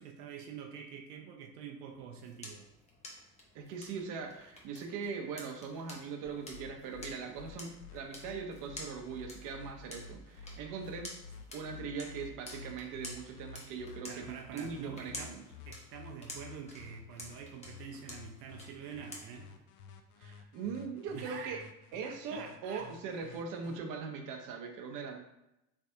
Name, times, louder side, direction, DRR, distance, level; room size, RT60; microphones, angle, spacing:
voice 1, 0.0-2.7 14.1-15.3 15.7-19.5 21.1-21.6 22.0-22.9, right 7 dB, 75° right, 3 dB, 0.7 m, -46 dB
sound 1, 1.9-19.6, left 1 dB, 15° left, 0.8 m, -51 dB
voice 2, 3.5-11.1 11.5-15.4 20.2-21.6 21.9-25.2, right 5 dB, 40° right, 3 dB, 0.7 m, -41 dB
sound 2, 6.2-23.8, left 6 dB, 40° left, 0.4 m, -52 dB
3.4 x 3.2 x 2.7 m, 0.89 s
hypercardioid pair, 95°, 48 cm